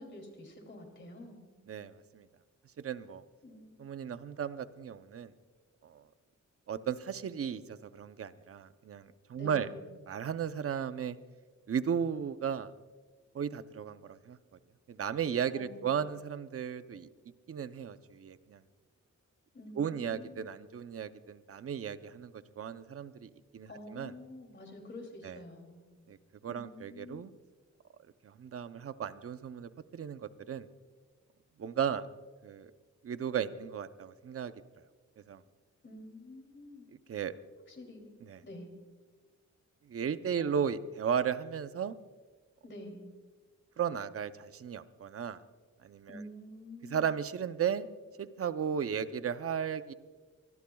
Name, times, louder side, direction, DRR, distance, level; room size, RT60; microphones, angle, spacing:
voice 1, 0.0-1.4 3.4-3.8 9.3-9.9 15.5-16.1 19.5-20.5 23.7-25.8 26.5-27.2 35.8-36.8 37.7-38.1 38.4-38.7 40.4-40.5 42.6-43.0 46.1-47.1, left 1 dB, 40° left, 3 dB, 2.8 m, -48 dB
voice 2, 1.7-2.3 2.8-3.2 3.8-5.3 5.8-6.0 6.7-9.7 10.1-11.2 11.7-12.7 13.3-14.4 14.9-17.1 17.5-18.6 19.8-24.1 25.2-25.4 26.1-26.2 26.4-27.3 28.2-30.7 31.6-32.1 32.4-32.7 33.0-34.5 35.3-35.4 37.1-37.3 38.2-38.4 39.9-41.9 43.8-45.4 45.8-46.2 46.9-47.9 48.2-49.9, right 8 dB, 50° right, 12 dB, 0.6 m, -35 dB
24.5 x 20.0 x 2.3 m, 1.4 s
wide cardioid pair, 175°, 29 cm